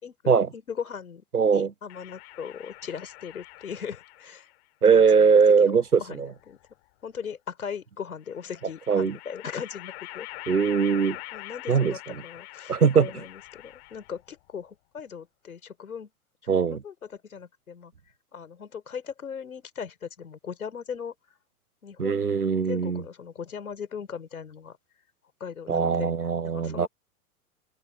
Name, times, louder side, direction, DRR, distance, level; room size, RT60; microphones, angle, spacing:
voice 1, 0.0-4.5 4.9-5.4 5.7-6.6 7.0-10.3 11.3-16.1 16.5-17.9 18.3-21.1 21.8-22.2 22.6-24.8 25.4-26.9, left 7 dB, 70° left, 5.3 m, -39 dB
voice 2, 1.3-1.7 4.8-6.3 8.9-9.2 10.5-11.2 11.7-11.9 12.7-13.1 16.5-16.8 22.0-23.0 25.7-26.9, right 6 dB, 80° right, 1.2 m, -21 dB
sound 1, 1.9-4.5 5.7-6.7 8.3-14.3, left 22 dB, 45° left, 3.1 m, -44 dB
open air
figure-of-eight pair, 95°, 44 cm